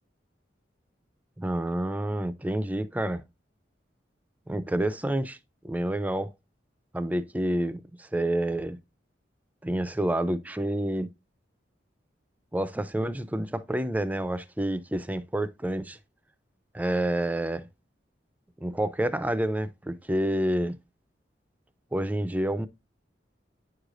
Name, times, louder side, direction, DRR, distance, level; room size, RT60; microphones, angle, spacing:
voice 1, 1.4-3.2 4.5-5.4 5.6-6.3 6.9-8.8 9.6-11.1 12.5-16.0 16.7-17.7 18.6-20.8 21.9-22.7, right 1 dB, 10° right, 0.4 m, -28 dB
9.5 x 4.8 x 2.5 m
head